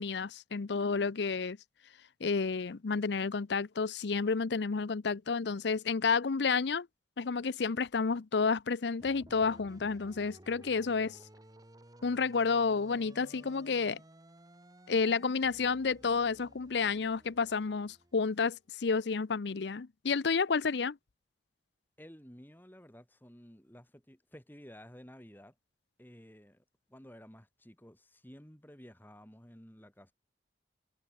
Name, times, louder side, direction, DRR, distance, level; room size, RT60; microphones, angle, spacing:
voice 1, 0.0-1.6 2.2-6.9 7.2-11.2 12.0-14.0 14.9-21.0, left 5 dB, 70° left, 0.6 m, -30 dB
sound 1, 9.0-18.6, right 1 dB, 20° right, 1.2 m, -57 dB
voice 2, 22.0-25.5 26.0-30.1, equal, 10° left, 5.1 m, -53 dB
head